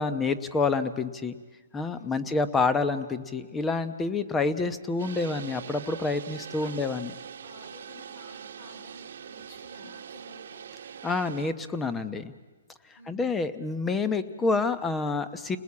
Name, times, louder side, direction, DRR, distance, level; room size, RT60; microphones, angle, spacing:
voice 1, 0.0-1.3 1.7-7.1 11.0-12.3 13.1-15.6, left 3 dB, 10° left, 13 dB, 0.9 m, -28 dB
voice 2, 1.9-2.3 6.6-7.0 7.4-10.6 13.0-13.2, left 2 dB, 55° left, 4 dB, 4.4 m, -51 dB
sound 1, 5.0-11.5, right 8 dB, 60° right, 1.2 m, -43 dB
30.0 x 20.0 x 8.6 m, 1.4 s
hypercardioid pair, 160°, 0 cm